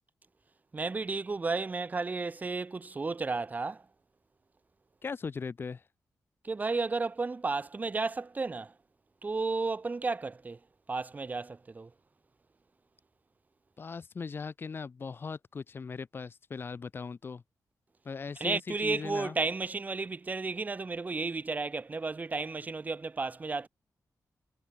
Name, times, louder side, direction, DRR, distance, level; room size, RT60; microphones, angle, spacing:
voice 1, 0.7-3.8 6.4-8.7 9.2-10.6 10.9-11.9 18.4-23.7, right 3 dB, 25° right, 0.6 m, -33 dB
voice 2, 5.0-5.8 13.8-17.4 18.0-19.4, left 5 dB, 35° left, 0.4 m, -39 dB
wide cardioid pair, 125°, 6 cm